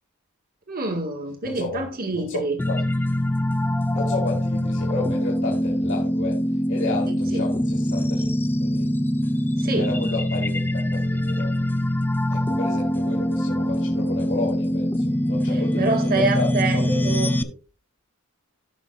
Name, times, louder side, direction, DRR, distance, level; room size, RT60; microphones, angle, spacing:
voice 1, 0.7-2.6 7.1-7.4 9.6-9.9 15.5-17.3, right 3 dB, 45° right, 4 dB, 1.8 m, -27 dB
voice 2, 1.4-1.8 2.1-2.8 3.9-6.4 6.7-8.9 9.8-11.7 12.3-17.2, left 3 dB, 60° left, -4 dB, 2.3 m, -32 dB
sound 1, 2.6-17.4, equal, 10° left, 0.4 m, -23 dB
16.5 x 5.9 x 2.4 m, 0.35 s
head